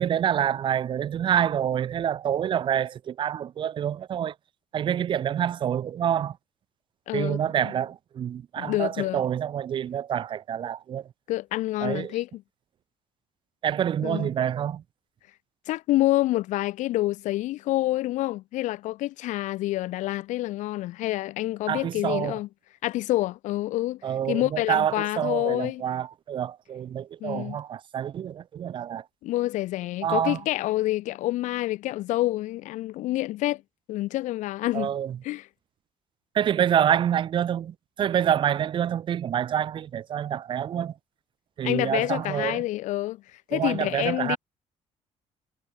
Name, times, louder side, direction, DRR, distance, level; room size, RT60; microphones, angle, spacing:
voice 1, 0.0-4.3 4.7-6.4 7.1-11.0 11.8-12.1 13.6-14.8 21.7-22.4 24.0-29.0 30.0-30.4 34.7-35.2 36.3-40.9 41.6-42.6 43.5-44.4, right 9 dB, 40° right, 2.2 m, -27 dB
voice 2, 7.1-7.7 8.6-9.2 11.3-12.4 14.0-14.3 15.7-22.5 22.8-24.0 24.3-25.8 27.2-27.6 29.2-33.6 33.9-34.9 35.2-35.5 41.6-43.2 43.5-44.4, left 16 dB, 85° left, 2.6 m, -27 dB
cardioid pair, 175°, 12 cm